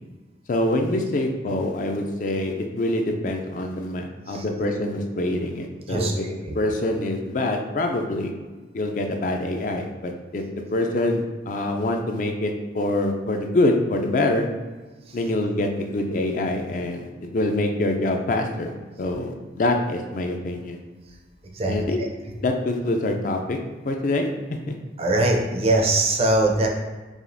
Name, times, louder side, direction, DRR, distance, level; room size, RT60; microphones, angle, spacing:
voice 1, 0.5-6.2 6.5-8.3 8.7-10.4 10.7-14.5 15.1-18.7 19.0-20.8 21.7-22.0 22.4-23.6 23.9-24.3 24.7-24.8, left 2 dB, 45° left, 3 dB, 0.4 m, -25 dB
voice 2, 5.9-6.6 15.1-15.2 21.5-22.1 25.0-26.7, right 2 dB, 30° right, 1 dB, 0.4 m, -22 dB
4.8 x 2.7 x 2.6 m, 1.3 s
head